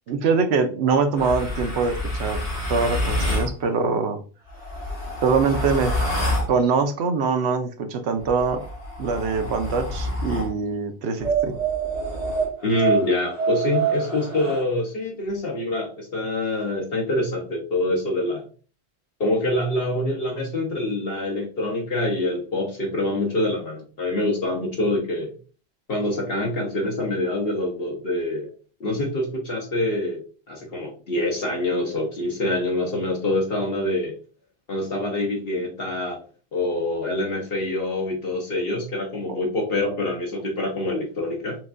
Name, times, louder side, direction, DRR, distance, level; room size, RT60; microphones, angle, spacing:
voice 1, 0.1-2.4 2.7-4.2 5.2-5.9 6.5-8.6 9.0-11.6 39.3-39.4, right 5 dB, 75° right, 7 dB, 0.9 m, -23 dB
sound 1, 1.2-3.5 4.5-6.5 8.2-10.5 11.2-14.6, right 2 dB, 85° left, 2.5 m, -27 dB
voice 2, 12.6-18.4 19.2-25.3 25.9-28.5 28.8-30.2 30.5-34.1 34.7-36.2 36.5-41.6, left 1 dB, 65° left, -1 dB, 1.1 m, -25 dB
5.8 x 2.3 x 2.5 m, 0.39 s
omnidirectional pair, 1.1 m